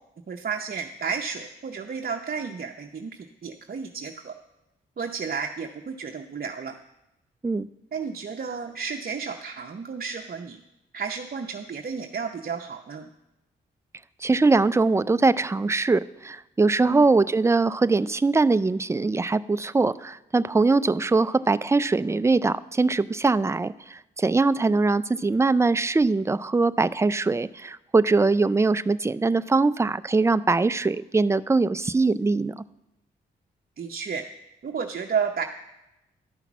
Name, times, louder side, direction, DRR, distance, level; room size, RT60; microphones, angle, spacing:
voice 1, 0.3-4.3 5.0-6.7 7.9-10.6 10.9-13.1 16.8-17.1 33.8-34.2 34.6-35.4, right 6 dB, 45° right, 3 dB, 0.7 m, -32 dB
voice 2, 14.2-32.6, right 3 dB, 15° right, 15 dB, 0.4 m, -22 dB
11.5 x 5.8 x 7.2 m, 0.92 s
supercardioid pair, 40°, 21 cm